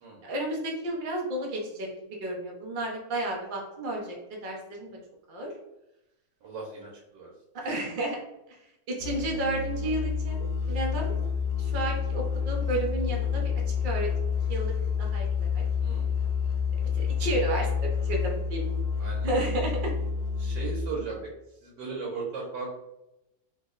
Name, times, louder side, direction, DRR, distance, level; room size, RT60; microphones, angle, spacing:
voice 1, 0.2-5.0 5.3-5.5 7.5-8.2 8.5-8.6 8.9-11.1 11.6-14.1 14.5-15.6 16.9-18.6 19.2-19.9, right 1 dB, 65° right, -1 dB, 0.5 m, -32 dB
voice 2, 6.4-7.3 7.6-7.7 15.8-16.1 16.9-17.1 19.0-19.5 20.4-21.3 21.6-22.7, right 4 dB, 90° right, -3 dB, 1.4 m, -37 dB
Musical instrument, 9.0-21.0, left 6 dB, 75° left, 1.1 m, -29 dB
3.2 x 2.0 x 3.7 m, 0.91 s
omnidirectional pair, 1.9 m